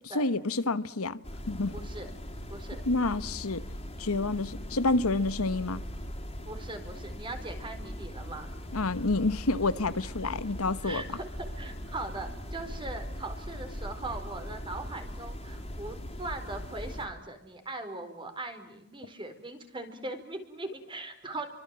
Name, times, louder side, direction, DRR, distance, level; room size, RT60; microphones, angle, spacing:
voice 1, 0.1-1.2 1.5-1.8 2.8-3.6 4.0-5.8 8.7-11.2, left 3 dB, 80° left, 1.2 m, -28 dB
sound 1, 1.2-17.1, equal, 25° left, 4.2 m, -40 dB
voice 2, 1.7-2.1 2.5-2.8 6.4-8.5 10.8-11.2 11.5-21.4, right 2 dB, 20° right, 4.5 m, -40 dB
30.0 x 24.5 x 7.6 m
head